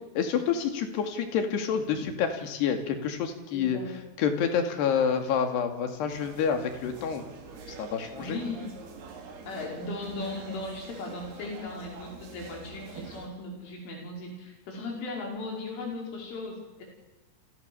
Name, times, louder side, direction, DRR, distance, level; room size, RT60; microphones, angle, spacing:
voice 1, 0.2-3.8 4.2-7.2 7.7-8.4, left 7 dB, 65° left, 6 dB, 4.5 m, -28 dB
voice 2, 3.5-4.0 8.2-8.8 9.4-16.9, left 2 dB, 85° left, 0 dB, 7.7 m, -37 dB
sound 1, 6.1-13.3, right 4 dB, 55° right, 5.2 m, -46 dB
29.5 x 26.0 x 7.1 m, 1.1 s
omnidirectional pair, 5.5 m